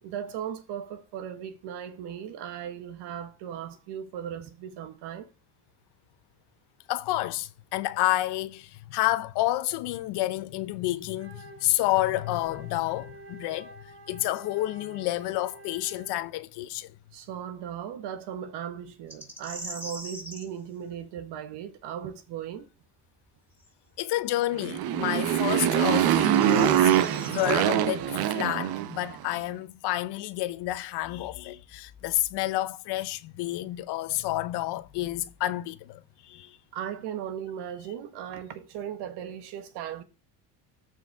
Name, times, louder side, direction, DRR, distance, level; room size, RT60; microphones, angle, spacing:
voice 1, 0.0-5.3 17.1-22.7 36.7-40.0, right 9 dB, 75° right, 1.5 m, -37 dB
voice 2, 6.9-13.7 14.1-16.9 24.0-26.9 27.3-36.6, left 16 dB, 70° left, 0.9 m, -29 dB
Wind instrument woodwind instrument, 11.1-16.3, right 1 dB, 30° right, 1.6 m, -49 dB
sound 1, 19.1-20.5 23.6-23.7 25.8-27.5, equal, 5° right, 3.7 m, -41 dB
Motorcycle, 24.5-29.2, right 11 dB, 60° right, 0.9 m, -24 dB
13.5 x 4.7 x 3.6 m
cardioid pair, 135°, 41 cm